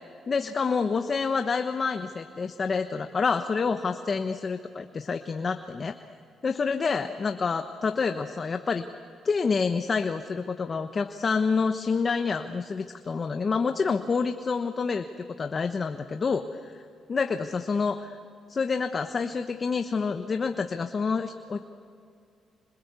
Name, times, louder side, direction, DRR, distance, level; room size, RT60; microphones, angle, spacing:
voice 1, 0.3-6.0 6.4-8.9 9.2-16.8 17.1-18.2 18.5-21.6, left 5 dB, 40° left, 7 dB, 1.1 m, -28 dB
26.5 x 26.5 x 8.3 m, 2.4 s
cardioid pair, 90°, 0 cm